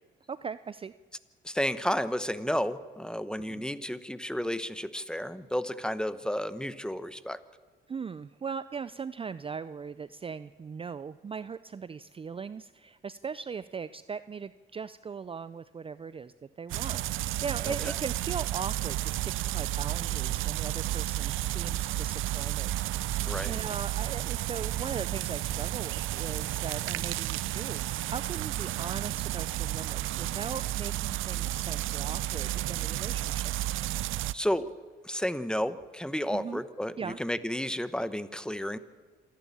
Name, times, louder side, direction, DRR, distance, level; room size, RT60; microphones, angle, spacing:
voice 1, 0.3-0.9 3.4-3.6 7.9-22.7 23.0-33.5 36.3-36.6 37.0-37.2, right 6 dB, 25° right, 15 dB, 0.5 m, -39 dB
voice 2, 1.4-7.4 17.7-18.0 23.2-23.5 34.3-34.7 35.0-38.8, equal, 5° left, 14 dB, 1.0 m, -32 dB
sound 1, 16.7-34.3, right 15 dB, 85° right, 0.6 m, -32 dB
27.0 x 11.5 x 8.5 m, 1.5 s
cardioid pair, 90°, 20 cm